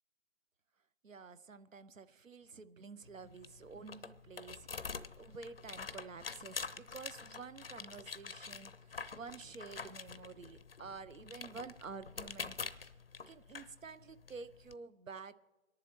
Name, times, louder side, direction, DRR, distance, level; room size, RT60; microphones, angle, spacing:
voice 1, 1.0-12.6 13.3-15.3, right 5 dB, 70° right, 14 dB, 0.8 m, -50 dB
sound 1, 3.0-14.7, left 5 dB, 45° left, 0.6 m, -47 dB
24.5 x 11.0 x 3.1 m, 1.1 s
figure-of-eight pair, 150°, 40 cm